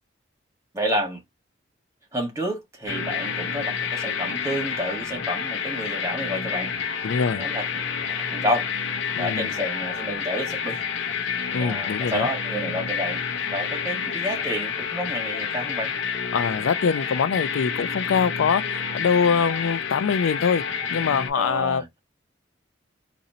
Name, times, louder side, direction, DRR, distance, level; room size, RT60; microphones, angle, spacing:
voice 1, 0.7-1.2 2.1-6.7 7.4-7.7 8.1-8.7 9.2-10.8 11.6-13.2 13.5-15.9 21.3-21.8, equal, 15° right, 1.4 m, -29 dB
sound 1, 2.9-21.3, left 6 dB, 70° left, 0.8 m, -29 dB
voice 2, 7.0-7.4 9.2-9.5 11.5-12.3 16.3-20.6 20.9-21.9, left 6 dB, 90° left, 0.4 m, -23 dB
4.1 x 2.6 x 2.7 m
head